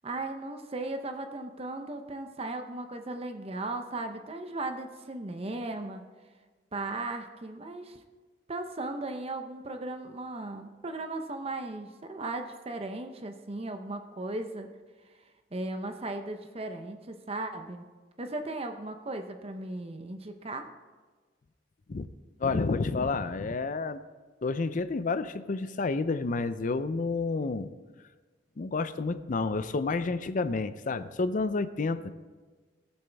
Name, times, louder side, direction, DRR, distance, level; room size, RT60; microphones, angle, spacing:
voice 1, 0.0-6.0 6.7-8.0 8.5-14.7 15.5-17.9 18.2-20.7, right 2 dB, 35° right, 7 dB, 0.7 m, -36 dB
voice 2, 22.4-24.0 24.4-27.7 28.6-32.1, left 3 dB, 45° left, 13 dB, 0.5 m, -30 dB
17.0 x 7.1 x 3.4 m, 1.4 s
head